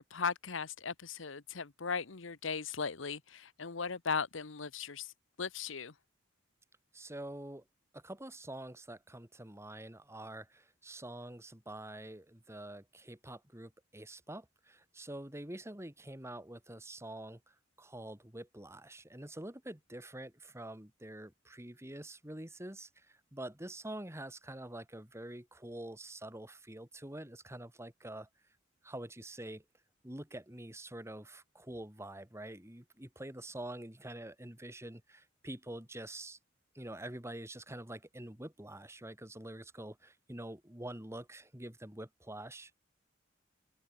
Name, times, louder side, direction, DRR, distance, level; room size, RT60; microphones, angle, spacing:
voice 1, 0.0-5.1 5.4-5.9, left 5 dB, 80° left, 1.1 m, -37 dB
voice 2, 6.9-7.6 7.9-17.4 17.8-28.3 28.8-29.6 30.0-36.4 36.7-42.7, right 1 dB, 15° right, 2.8 m, -46 dB
open air
head